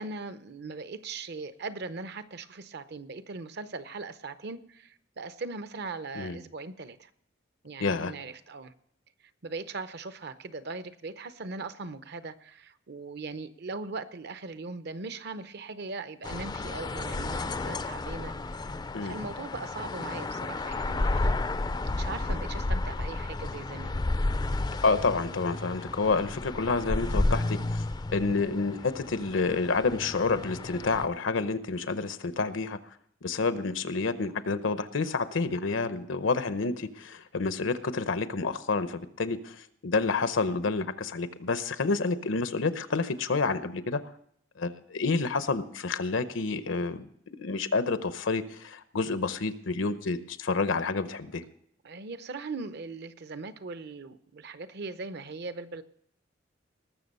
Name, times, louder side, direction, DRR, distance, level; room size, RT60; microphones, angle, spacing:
voice 1, 0.0-7.1 7.6-8.7 9.4-18.6 19.0-21.4 21.8-24.0 51.8-55.8, right 3 dB, 60° right, 12 dB, 0.7 m, -39 dB
voice 2, 7.8-8.1 18.9-19.1 24.8-27.8 28.1-32.8 33.2-44.0 44.6-47.1 47.4-51.4, left 4 dB, 80° left, 12 dB, 0.8 m, -29 dB
sound 1, 16.2-31.1, left 2 dB, 20° left, 0.4 m, -32 dB
19.5 x 6.9 x 5.4 m, 0.69 s
head